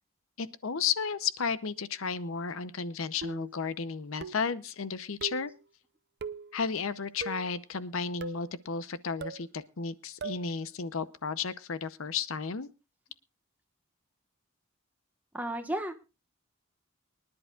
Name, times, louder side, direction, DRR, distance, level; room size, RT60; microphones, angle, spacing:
voice 1, 0.4-5.5 6.5-12.7, left 5 dB, 75° left, 15 dB, 0.7 m, -33 dB
sound 1, 3.2-3.6 4.2-4.6 5.2-5.5 6.2-6.5 7.2-7.5 8.2-8.5 9.2-9.5 10.2-10.5, right 4 dB, 50° right, 0.6 m, -40 dB
voice 2, 15.3-15.9, right 1 dB, 10° right, 6 dB, 1.2 m, -33 dB
24.0 x 10.5 x 2.4 m, 0.28 s
head